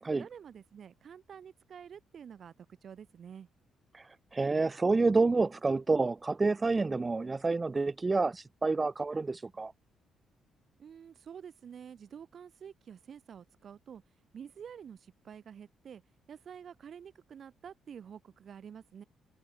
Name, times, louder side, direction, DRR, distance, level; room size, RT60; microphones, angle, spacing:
voice 1, 0.1-3.5 10.8-14.0 14.3-16.0 16.3-19.0, right 8 dB, 55° right, 1.3 m, -49 dB
voice 2, 3.9-9.7, right 3 dB, 25° right, 0.4 m, -29 dB
cardioid pair, 90°, 0 cm